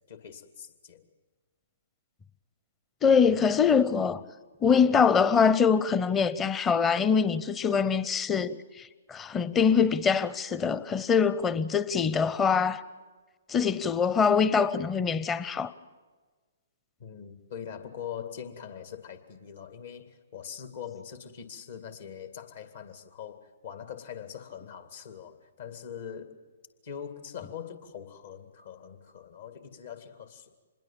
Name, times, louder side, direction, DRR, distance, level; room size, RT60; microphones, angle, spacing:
voice 1, 0.1-1.0 17.0-26.4 26.8-30.5, left 8 dB, 60° left, 2.3 m, -42 dB
voice 2, 3.0-4.2 4.6-12.8 13.5-15.7, left 6 dB, 15° left, 0.8 m, -24 dB
26.5 x 21.0 x 7.5 m
figure-of-eight pair, 125°, 0 cm